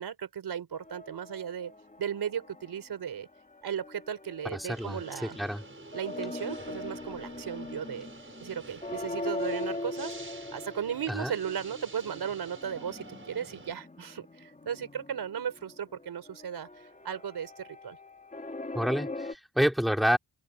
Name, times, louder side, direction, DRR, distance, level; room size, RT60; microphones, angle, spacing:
voice 1, 0.0-1.7 2.0-3.3 3.6-5.4 5.9-8.1 8.4-18.0, right 8 dB, 70° right, 4.2 m, -36 dB
sound 1, 0.7-2.9 3.2-19.3, left 2 dB, 20° left, 3.4 m, -41 dB
voice 2, 4.4-5.6 11.1-11.3 18.7-20.2, equal, ahead, 4.5 m, -28 dB
sound 2, 4.7-13.7, right 3 dB, 30° right, 6.3 m, -49 dB
cardioid pair, 90°, 40 cm